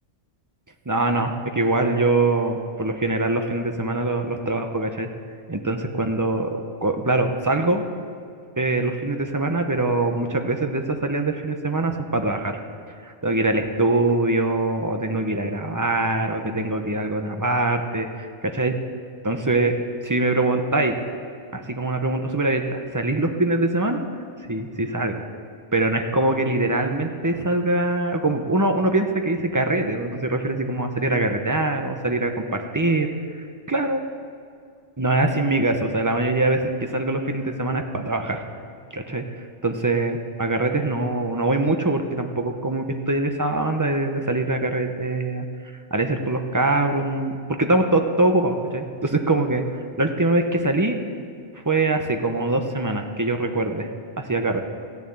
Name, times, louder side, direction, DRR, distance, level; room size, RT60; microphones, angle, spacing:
voice 1, 0.9-5.1 5.5-7.8 8.6-12.6 13.0-18.7 19.2-19.7 20.0-20.9 21.5-24.0 24.5-25.2 25.7-33.1 33.7-34.0 35.0-38.4 38.9-45.5 45.9-51.0 51.5-53.9 54.2-54.6, right 2 dB, 15° right, 5 dB, 0.7 m, -23 dB
15.0 x 7.2 x 8.8 m, 2.2 s
omnidirectional pair, 1.4 m